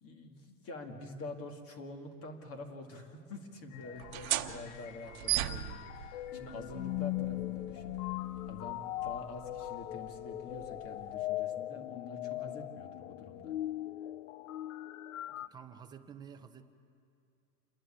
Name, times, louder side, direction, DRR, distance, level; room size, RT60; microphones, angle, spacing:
voice 1, 0.0-13.5, left 3 dB, 30° left, 5 dB, 2.1 m, -46 dB
sound 1, 3.7-15.5, left 15 dB, 65° left, 0.7 m, -40 dB
sound 2, 4.0-11.3, right 14 dB, 70° right, 1.1 m, -40 dB
voice 2, 15.3-16.6, right 8 dB, 10° right, 6 dB, 0.6 m, -51 dB
28.5 x 11.0 x 8.7 m, 2.5 s
supercardioid pair, 150°, 43 cm